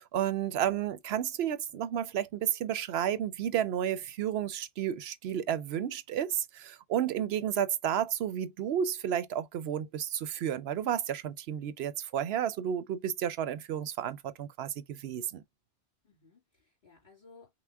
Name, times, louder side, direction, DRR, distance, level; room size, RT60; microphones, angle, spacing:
voice 1, 0.0-15.4, right 9 dB, 75° right, 0.8 m, -32 dB
voice 2, 7.1-7.5 16.0-17.5, left 4 dB, 45° left, 3.0 m, -59 dB
5.9 x 2.1 x 3.4 m
omnidirectional pair, 1.1 m